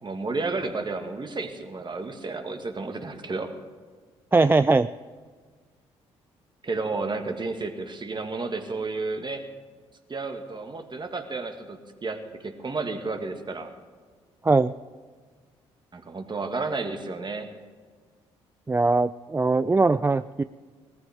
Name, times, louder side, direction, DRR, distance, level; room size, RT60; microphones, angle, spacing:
voice 1, 0.0-3.5 6.6-9.5 10.1-13.7 15.9-17.5, right 3 dB, 35° right, 5 dB, 1.8 m, -32 dB
voice 2, 4.3-4.9 14.4-14.7 18.7-20.4, right 3 dB, 15° right, 12 dB, 0.3 m, -21 dB
18.5 x 14.0 x 3.7 m, 1.5 s
hypercardioid pair, 50°, 13 cm